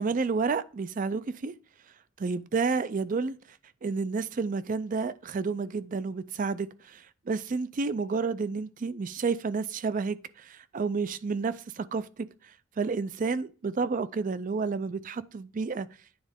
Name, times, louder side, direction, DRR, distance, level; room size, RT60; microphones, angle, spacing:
voice 1, 0.0-1.5 2.2-12.3 12.8-15.9, right 4 dB, 40° right, 0.4 m, -30 dB
9.5 x 4.0 x 3.5 m
head